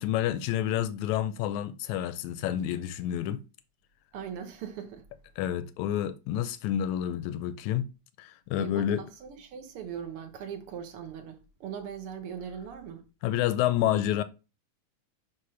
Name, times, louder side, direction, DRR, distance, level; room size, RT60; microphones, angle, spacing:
voice 1, 0.0-3.4 5.4-7.9 8.2-9.1 13.2-14.2, left 11 dB, 80° left, 1.7 m, -29 dB
voice 2, 4.1-5.0 8.6-13.1, right 8 dB, 65° right, 1.5 m, -40 dB
9.8 x 3.6 x 5.6 m
omnidirectional pair, 3.6 m